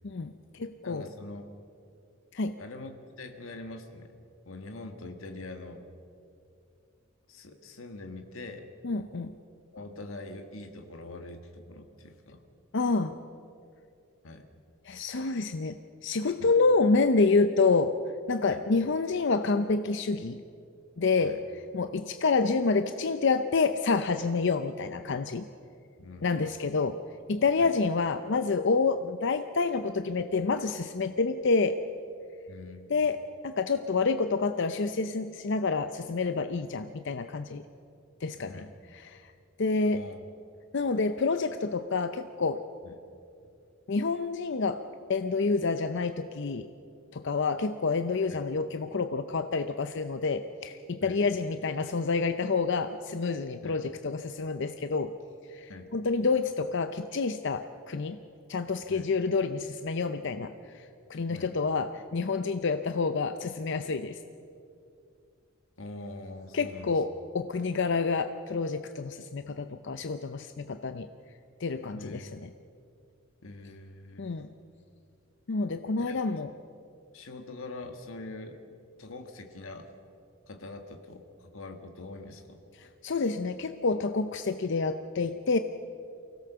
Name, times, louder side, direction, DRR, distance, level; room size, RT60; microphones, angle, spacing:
voice 1, 0.0-1.0 2.3-2.6 8.8-9.3 12.7-13.2 14.9-15.8 16.0-18.0 18.3-20.4 21.0-21.4 21.7-25.5 26.2-31.8 32.9-37.6 38.2-38.7 39.1-39.2 39.6-40.0 40.7-42.6 43.9-44.8 45.1-46.7 47.1-55.2 55.5-58.2 58.5-60.8 61.1-64.2 66.5-71.1 71.6-72.5 74.2-74.5 75.5-76.5 82.8-85.6, left 4 dB, 60° left, 9 dB, 0.6 m, -28 dB
voice 2, 0.8-1.5 2.6-4.1 4.4-5.8 7.3-8.7 9.7-12.4 14.2-14.5 16.4-16.5 18.5-18.7 21.2-21.4 26.0-26.3 27.6-27.7 32.5-33.0 38.4-38.8 39.9-40.2 42.8-43.0 48.3-48.4 51.0-51.2 53.6-53.8 55.7-55.9 58.9-59.1 61.3-61.5 65.8-66.9 71.9-72.3 73.4-74.3 76.0-76.2 77.1-79.9 80.5-82.6, left 2 dB, 80° left, 6 dB, 1.6 m, -44 dB
24.0 x 17.0 x 6.9 m, 2.5 s
head